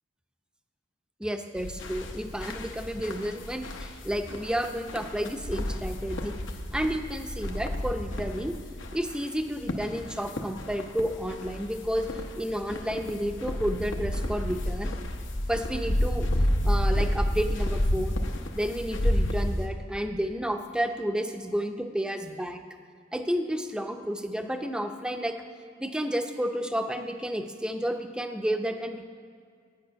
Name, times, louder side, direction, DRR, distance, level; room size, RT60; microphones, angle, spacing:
voice 1, 1.2-6.3 6.7-8.5 8.9-14.9 15.5-16.3 16.6-18.2 18.5-22.6 23.1-25.4 25.8-29.0, equal, 5° right, 5 dB, 0.6 m, -31 dB
sound 1, 1.5-19.7, left 1 dB, 70° left, 0.9 m, -31 dB
9.4 x 8.9 x 5.7 m, 2.1 s
head